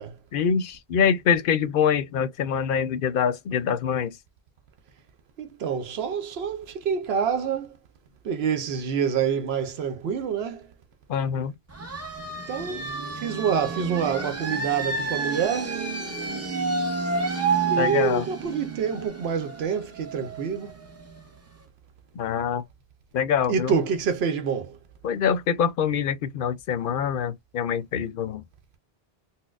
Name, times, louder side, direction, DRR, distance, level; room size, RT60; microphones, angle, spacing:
voice 1, 0.3-4.2 11.1-11.5 17.8-18.3 22.2-22.6 23.1-23.7 25.0-28.4, left 7 dB, 60° left, 0.7 m, -25 dB
voice 2, 5.4-7.8 8.2-10.7 12.5-12.8 13.2-15.8 17.7-20.7 23.5-24.8, right 7 dB, 80° right, 0.8 m, -27 dB
sound 1, 11.7-21.2, right 4 dB, 20° right, 0.6 m, -30 dB
4.1 x 2.0 x 2.4 m
omnidirectional pair, 1.1 m